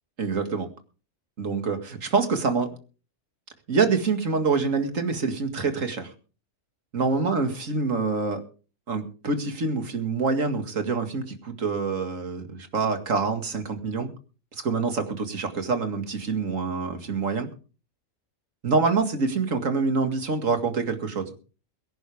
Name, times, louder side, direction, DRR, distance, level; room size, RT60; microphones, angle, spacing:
voice 1, 0.2-0.7 1.4-2.8 3.7-6.1 6.9-8.4 8.9-14.1 14.6-17.5 18.6-21.3, right 4 dB, 80° right, 7 dB, 2.4 m, -26 dB
23.0 x 10.5 x 3.5 m, 0.36 s
omnidirectional pair, 1.3 m